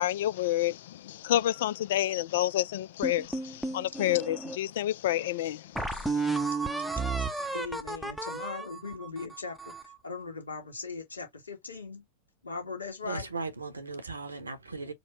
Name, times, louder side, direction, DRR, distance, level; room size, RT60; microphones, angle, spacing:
voice 1, 0.0-6.4, left 13 dB, 55° left, 0.3 m, -29 dB
sound 1, 3.0-4.6 5.1-5.2 5.8-9.9, right 3 dB, ahead, 0.7 m, -33 dB
voice 2, 7.5-12.0 12.4-13.3, left 4 dB, 75° left, 1.6 m, -39 dB
voice 3, 13.0-14.9, right 4 dB, 80° right, 1.0 m, -37 dB
4.3 x 2.1 x 4.3 m
figure-of-eight pair, 90°, 0 cm